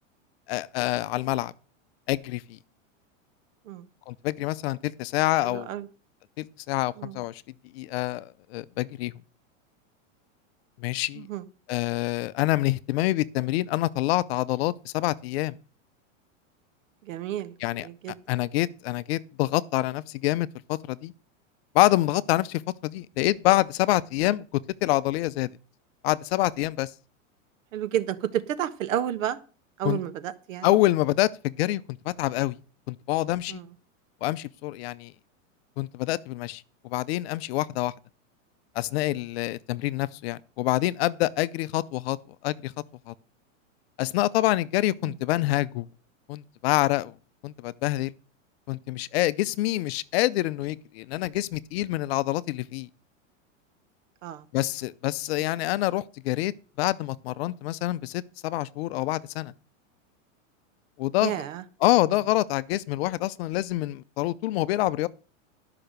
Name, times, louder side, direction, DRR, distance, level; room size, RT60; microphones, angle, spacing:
voice 1, 0.5-1.5 2.1-2.6 4.1-5.7 6.4-7.4 7.7-9.1 10.8-11.3 11.7-15.5 17.6-17.9 18.3-21.1 21.7-25.5 26.0-26.9 29.8-30.0 30.6-32.6 32.9-33.6 34.2-35.1 35.8-37.9 38.8-42.2 42.4-42.7 43.1-43.2 44.0-45.9 46.3-47.1 47.4-48.1 48.7-52.9 54.5-56.5 56.8-59.5 61.0-61.3 61.8-65.1, left 17 dB, 50° left, 0.6 m, -26 dB
voice 2, 5.4-5.9 7.0-7.2 11.1-11.5 17.0-18.2 27.7-29.4 29.8-30.8 33.5-33.7 45.0-45.2 54.2-54.4 55.4-55.5 61.2-61.6, right 11 dB, 75° right, 1.4 m, -31 dB
12.0 x 5.9 x 6.6 m
supercardioid pair, 145°, 39 cm